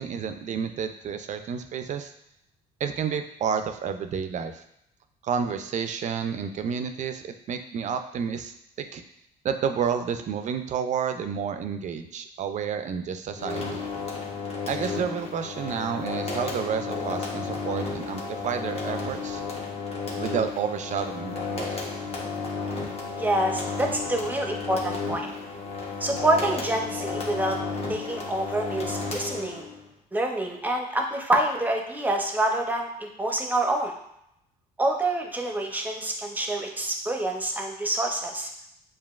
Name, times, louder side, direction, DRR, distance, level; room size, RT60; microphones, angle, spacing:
voice 1, 0.0-2.1 2.8-4.6 5.2-9.0 9.4-13.8 14.7-19.4 20.2-21.8, right 7 dB, 45° right, 8 dB, 0.5 m, -30 dB
sound 1, 13.3-29.8, left 4 dB, 35° left, 1.0 m, -33 dB
voice 2, 23.1-25.3 26.0-27.6 27.9-29.7 30.1-33.9 34.8-38.5, right 1 dB, 10° right, 2 dB, 0.7 m, -27 dB
7.1 x 2.5 x 2.4 m, 0.77 s
cardioid pair, 110°, 17 cm